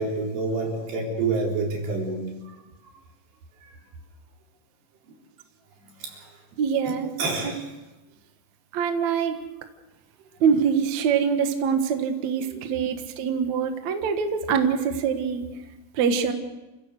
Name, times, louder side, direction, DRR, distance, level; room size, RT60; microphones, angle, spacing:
voice 1, 0.0-2.3 6.0-6.1 6.9-7.0 7.2-7.7 12.4-12.9, right 3 dB, 75° right, -1 dB, 6.2 m, -28 dB
voice 2, 6.6-7.1 8.7-9.4 10.4-15.5 15.9-16.3, right 6 dB, 55° right, 6 dB, 2.2 m, -24 dB
29.0 x 16.0 x 6.7 m, 1.1 s
omnidirectional pair, 4.8 m